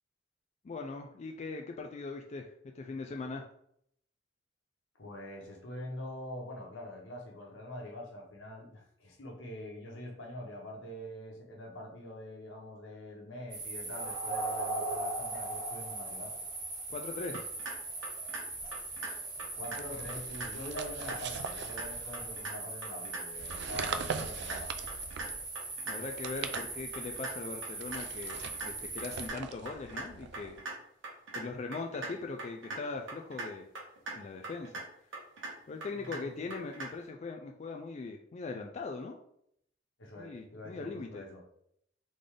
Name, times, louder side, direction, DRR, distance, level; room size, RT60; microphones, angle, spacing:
voice 1, 0.6-2.5 2.7-3.4 16.9-17.5 25.9-30.6 31.3-33.7 34.1-34.7 35.7-39.2 40.2-41.2, left 3 dB, 35° left, 3 dB, 0.4 m, -40 dB
voice 2, 5.0-16.3 19.0-24.7 35.9-36.4 40.0-41.4, left 1 dB, 80° left, -1 dB, 1.3 m, -44 dB
sound 1, 13.5-29.3, right 2 dB, 45° right, 1.3 m, -40 dB
sound 2, 17.3-17.7 18.0-18.4 18.7-19.1 19.4-19.8 20.1-20.5 20.8-21.2 21.5-21.8 22.1-22.5 22.8-23.2 23.5-23.9 24.2-24.6 24.9-25.3 25.6-25.9 26.2-26.6 26.9-27.3 27.6-28.0 28.3-28.7 29.0-29.4 29.7-30.1 30.3-30.7 31.0-31.4 31.7-32.1 32.4-32.8 33.1-33.5 33.8-34.2 34.4-34.8 35.1-35.5 35.8-36.2 36.5-36.9, right 3 dB, 85° right, 1.4 m, -40 dB
sound 3, 19.7-22.5 23.3-25.5 26.0-27.2 27.8-30.6, right 6 dB, 60° right, 0.4 m, -42 dB
3.8 x 3.3 x 3.7 m, 0.72 s
head